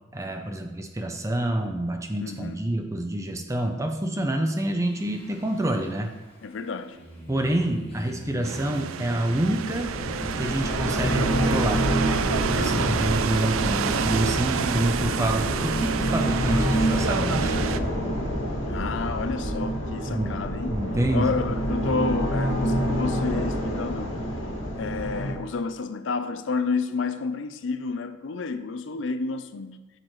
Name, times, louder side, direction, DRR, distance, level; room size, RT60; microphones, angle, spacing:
voice 1, 0.1-6.1 7.3-9.9 10.4-11.9 12.5-17.6 20.1-20.3 20.7-21.3, right 1 dB, 15° right, 0.5 m, -27 dB
voice 2, 2.2-2.6 6.4-7.0 12.5-13.0 18.7-20.7 21.1-24.2 24.8-29.8, left 4 dB, 70° left, 0.5 m, -30 dB
Singing, 4.7-15.2, equal, 25° left, 1.9 m, -44 dB
sound 1, 8.4-17.8, right 7 dB, 90° right, 0.4 m, -29 dB
sound 2, 9.6-25.3, equal, 90° left, 1.8 m, -27 dB
10.0 x 6.6 x 3.1 m
head